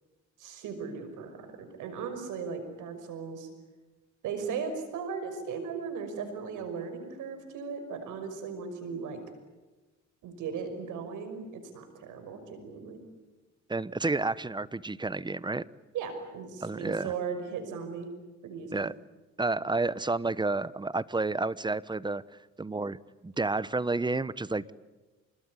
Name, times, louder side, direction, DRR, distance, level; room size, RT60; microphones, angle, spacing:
voice 1, 0.4-3.5 4.2-9.2 10.2-13.0 15.9-18.1 18.4-18.8, right 6 dB, 90° right, 7 dB, 5.8 m, -37 dB
voice 2, 13.7-15.6 16.6-17.1 18.7-18.9 19.4-22.2 22.6-23.0 23.2-24.7, right 3 dB, 15° right, 18 dB, 0.9 m, -30 dB
27.0 x 21.0 x 9.8 m, 1.2 s
cardioid pair, 90°, 30 cm